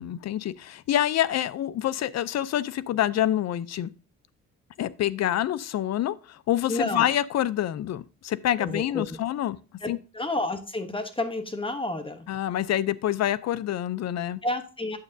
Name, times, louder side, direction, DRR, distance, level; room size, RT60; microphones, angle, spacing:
voice 1, 0.0-3.9 4.8-9.6 9.9-10.0 12.3-14.4, left 12 dB, 60° left, 0.5 m, -27 dB
voice 2, 6.7-7.1 8.6-9.0 9.8-12.3 14.4-15.0, left 2 dB, 15° left, 1.0 m, -30 dB
8.9 x 7.1 x 2.6 m
cardioid pair, 90°, 30 cm